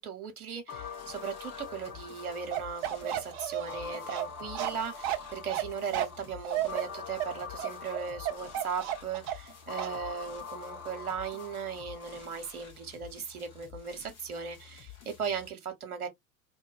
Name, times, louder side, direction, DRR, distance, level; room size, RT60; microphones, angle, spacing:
voice 1, 0.0-16.1, right 6 dB, 70° right, 0.8 m, -38 dB
sound 1, 0.7-12.7, left 6 dB, 65° left, 1.6 m, -45 dB
sound 2, 0.7-15.5, left 9 dB, 35° left, 1.1 m, -52 dB
Bark, 2.5-9.5 9.8-10.0, right 12 dB, 35° right, 0.4 m, -33 dB
2.6 x 2.1 x 2.3 m
figure-of-eight pair, 85°, 44 cm